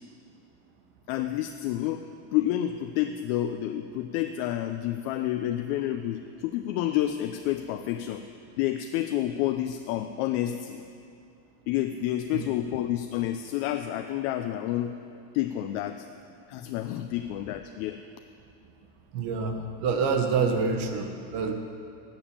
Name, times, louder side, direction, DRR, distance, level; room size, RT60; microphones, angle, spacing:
voice 1, 1.1-2.0 2.3-8.2 8.6-10.8 11.7-14.9 15.3-16.1 16.5-18.0, left 12 dB, 65° left, 7 dB, 0.5 m, -29 dB
voice 2, 19.1-21.5, right 5 dB, 75° right, 4 dB, 1.1 m, -27 dB
7.0 x 7.0 x 7.2 m, 2.5 s
cardioid pair, 150°, 45 cm